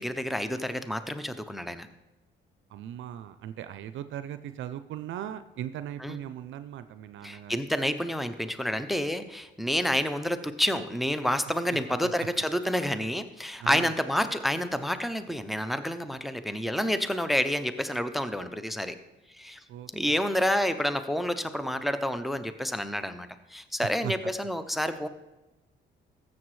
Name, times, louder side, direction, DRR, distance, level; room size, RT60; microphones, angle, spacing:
voice 1, 0.0-1.9 6.0-6.2 7.2-19.0 19.3-19.6 19.9-25.1, equal, ahead, 11 dB, 0.5 m, -29 dB
voice 2, 2.7-7.6 12.0-12.1 13.6-13.9 19.7-20.2 24.0-24.1, right 11 dB, 75° right, 12 dB, 0.5 m, -38 dB
13.5 x 7.4 x 3.2 m, 1.0 s
cardioid pair, 90°, 20 cm